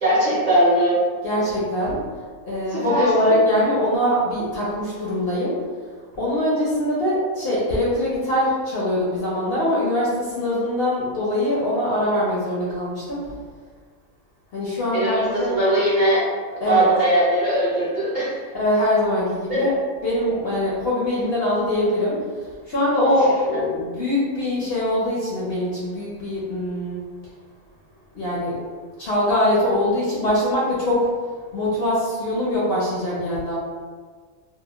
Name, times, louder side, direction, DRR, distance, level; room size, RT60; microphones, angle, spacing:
voice 1, 0.0-1.0 2.7-3.3 14.9-16.2 16.6-18.4 19.5-19.6, right 1 dB, 45° right, -10 dB, 0.7 m, -20 dB
voice 2, 1.2-2.0 2.4-5.6 6.1-13.4 14.5-15.5 16.6-16.9 18.5-19.7 20.0-22.2 22.7-27.0 28.1-28.6 29.0-31.1 31.5-33.6, left 1 dB, 60° left, -7 dB, 0.7 m, -22 dB
2.9 x 2.1 x 2.3 m, 1.5 s
omnidirectional pair, 1.4 m